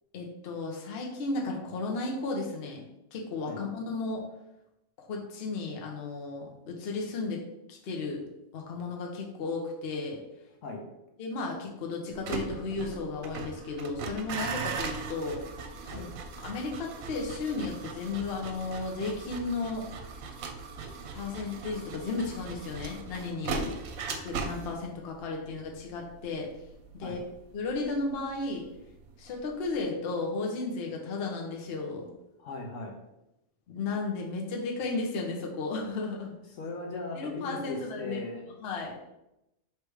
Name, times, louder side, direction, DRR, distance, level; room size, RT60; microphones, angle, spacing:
voice 1, 0.1-2.8 3.1-4.2 5.0-7.4 7.7-8.2 8.5-10.2 11.2-15.4 15.8-16.1 16.4-19.9 21.1-23.7 24.2-26.5 27.0-27.2 27.5-28.6 29.2-32.1 33.7-36.3 37.1-38.2 38.6-38.9, left 3 dB, 55° left, 0 dB, 0.9 m, -34 dB
sound 1, 12.1-29.1 29.4-29.8, right 4 dB, 85° right, 1.0 m, -39 dB
voice 2, 32.4-32.9 36.5-38.4, left 2 dB, 70° left, 1 dB, 1.1 m, -38 dB
3.3 x 3.2 x 4.7 m, 0.88 s
omnidirectional pair, 1.4 m